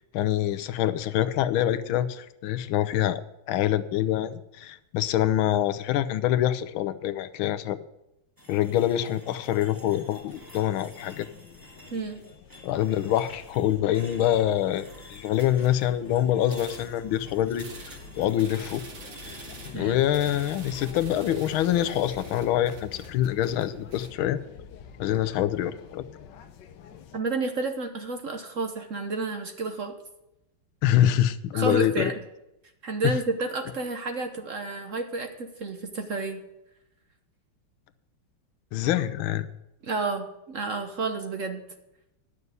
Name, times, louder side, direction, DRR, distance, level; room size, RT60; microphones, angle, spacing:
voice 1, 0.1-3.2 3.5-7.8 8.5-11.3 12.6-14.8 15.1-17.7 18.2-18.8 19.7-24.4 25.0-26.1 30.8-32.1 33.0-33.2 38.7-39.5, left 12 dB, 90° left, 13 dB, 1.5 m, -25 dB
sound 1, 8.4-20.8, equal, 10° right, 1.8 m, -51 dB
sound 2, 9.6-27.2, left 6 dB, 70° left, 1.3 m, -47 dB
voice 2, 11.9-12.2 19.7-20.0 27.1-29.9 31.5-32.2 32.8-36.4 39.8-41.6, right 3 dB, 50° right, 6 dB, 1.1 m, -30 dB
sound 3, 15.4-16.1 16.4-17.2 17.6-24.1, right 3 dB, 75° right, 3.1 m, -46 dB
11.0 x 6.7 x 8.1 m, 0.88 s
omnidirectional pair, 2.2 m